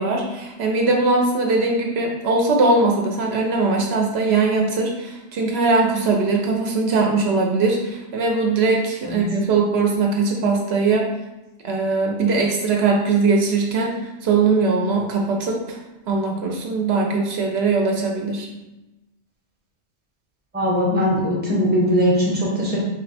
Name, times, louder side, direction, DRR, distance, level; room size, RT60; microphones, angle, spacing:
voice 1, 0.0-11.1 11.6-15.8 16.1-18.5, right 3 dB, 70° right, 0 dB, 0.8 m, -20 dB
voice 2, 20.5-22.8, equal, 10° right, -4 dB, 0.7 m, -20 dB
3.5 x 2.1 x 4.0 m, 1.0 s
omnidirectional pair, 1.1 m